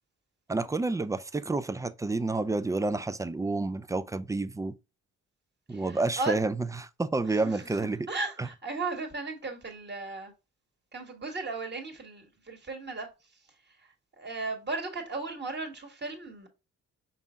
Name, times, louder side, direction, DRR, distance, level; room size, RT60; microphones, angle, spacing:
voice 1, 0.5-4.7 5.7-8.1 8.4-8.5, right 3 dB, 10° right, 0.3 m, -29 dB
voice 2, 5.7-6.4 7.3-10.3 10.9-13.1 13.8-13.9 14.2-16.5, right 3 dB, 35° right, 1.6 m, -36 dB
5.4 x 4.1 x 2.3 m
cardioid pair, 90°, 30 cm